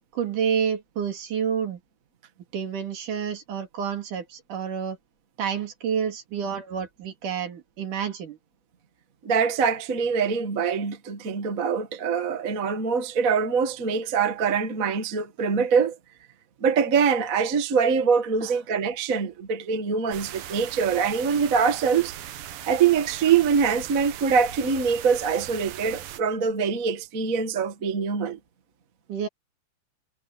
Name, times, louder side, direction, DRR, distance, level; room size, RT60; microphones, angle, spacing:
voice 1, 0.1-1.8 2.5-5.0 5.4-8.4 18.4-18.6 29.1-29.3, right 7 dB, 65° right, 3.8 m, -29 dB
voice 2, 9.2-16.0 16.6-22.1 22.6-28.4, right 6 dB, 35° right, 1.4 m, -24 dB
sound 1, 20.1-26.2, right 11 dB, 85° right, 3.1 m, -39 dB
omnidirectional pair, 3.9 m